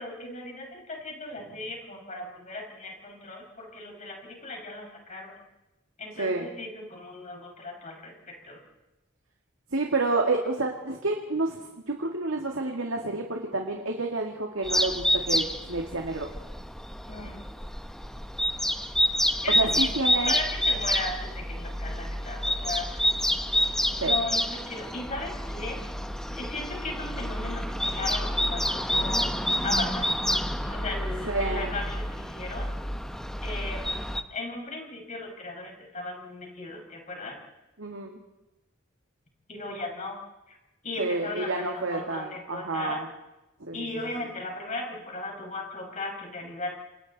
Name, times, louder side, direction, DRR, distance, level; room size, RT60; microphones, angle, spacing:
voice 1, 0.0-5.3 6.0-8.6 17.1-17.5 19.4-23.0 24.0-25.8 26.4-30.1 30.6-32.7 33.4-34.0 34.3-37.4 39.5-40.2 40.5-40.6 40.8-43.0 43.7-46.7, left 2 dB, 40° left, 1 dB, 6.0 m, -37 dB
voice 2, 9.7-11.6 12.0-16.3 19.5-20.4 23.5-23.7 24.0-24.2 31.3-31.7 37.8-38.2 41.0-43.0 43.7-43.8, right 2 dB, 75° right, 1 dB, 2.3 m, -29 dB
sound 1, 14.6-34.2, left 1 dB, 5° left, 1.0 m, -28 dB
28.0 x 27.0 x 4.2 m, 0.99 s
head